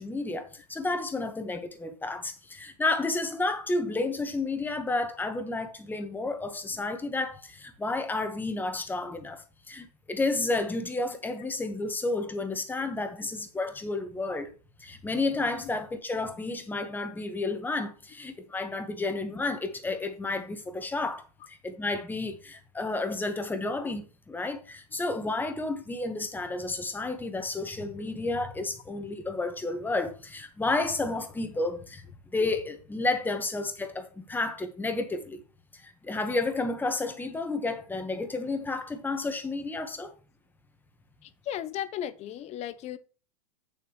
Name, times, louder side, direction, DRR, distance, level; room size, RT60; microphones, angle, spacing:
voice 1, 0.0-14.5 14.8-32.0 32.3-35.4 35.7-40.1, left 2 dB, 10° left, 1.3 m, -31 dB
voice 2, 41.2-43.0, left 11 dB, 30° left, 0.8 m, -35 dB
8.6 x 7.0 x 3.2 m
hypercardioid pair, 110°, 21 cm